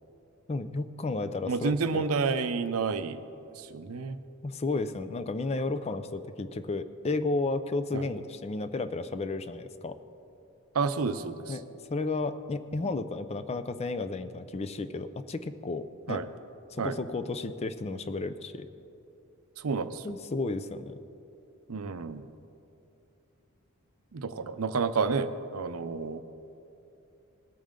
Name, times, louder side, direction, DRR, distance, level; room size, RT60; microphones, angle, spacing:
voice 1, 0.5-2.1 4.4-10.0 11.5-11.6 11.9-16.2 16.7-18.7 20.0-21.0, left 3 dB, 30° left, 11 dB, 0.4 m, -33 dB
voice 2, 1.5-3.2 3.6-4.2 7.9-8.1 10.7-11.6 12.8-12.9 16.1-16.3 16.8-17.0 19.6-20.1 21.7-22.3 24.1-26.2, right 4 dB, 75° right, 11 dB, 0.6 m, -30 dB
19.5 x 8.7 x 3.7 m, 2.7 s
head